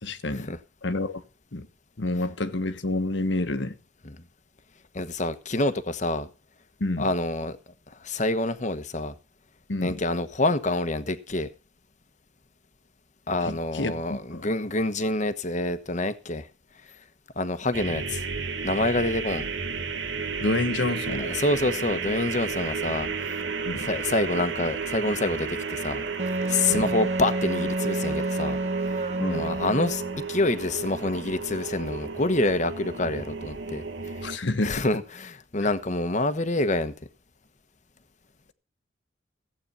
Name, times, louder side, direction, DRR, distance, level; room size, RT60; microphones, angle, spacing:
voice 1, 0.0-0.5 0.8-1.2 1.5-1.7 2.0-3.7 6.8-7.1 9.7-10.0 13.4-14.4 20.4-21.3 23.7-23.9 26.7-26.9 29.2-29.5 34.2-34.9 35.6-35.7, left 2 dB, 70° left, 1.3 m, -28 dB
voice 2, 4.9-6.3 7.0-7.6 8.0-9.1 9.8-11.5 13.3-16.5 17.4-18.3 18.6-19.5 21.2-23.4 23.8-26.0 26.5-28.6 29.3-30.0 30.3-33.8 34.6-36.9, left 2 dB, 40° left, 1.2 m, -27 dB
sound 1, 17.7-34.4, right 5 dB, 70° right, 1.6 m, -33 dB
Wind instrument woodwind instrument, 26.2-30.3, right 2 dB, 35° right, 0.7 m, -29 dB
15.0 x 8.7 x 5.6 m
head